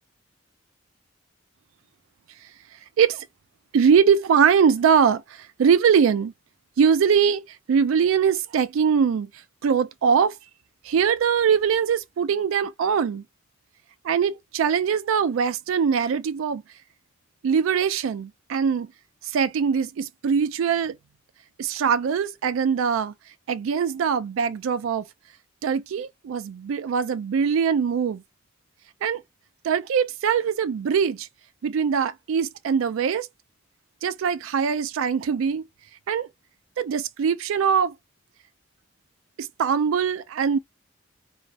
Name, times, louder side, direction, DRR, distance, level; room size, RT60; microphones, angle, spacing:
voice 1, 3.7-6.3 6.8-7.4 7.7-9.3 9.6-10.4 10.8-13.2 14.0-16.6 17.4-18.9 19.2-21.0 21.6-23.1 23.5-25.1 25.6-28.2 29.0-29.2 29.6-31.3 31.6-33.3 34.0-35.7 36.1-36.3 36.8-37.9 39.4-40.6, right 7 dB, 85° right, 0.3 m, -22 dB
2.4 x 2.0 x 2.5 m
head